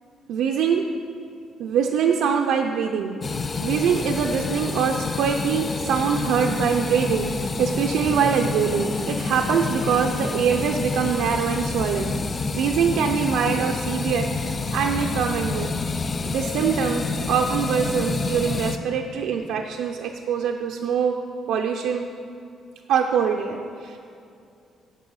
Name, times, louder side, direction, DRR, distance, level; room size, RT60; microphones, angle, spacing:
voice 1, 0.3-0.9 1.6-3.2 3.6-12.1 12.5-15.8 16.3-21.2 21.5-22.1 22.9-24.0, right 7 dB, 90° right, 2 dB, 0.5 m, -23 dB
sound 1, 3.2-18.8, left 4 dB, 25° left, 0.3 m, -28 dB
10.5 x 5.5 x 6.4 m, 2.5 s
cardioid pair, 175°, 0 cm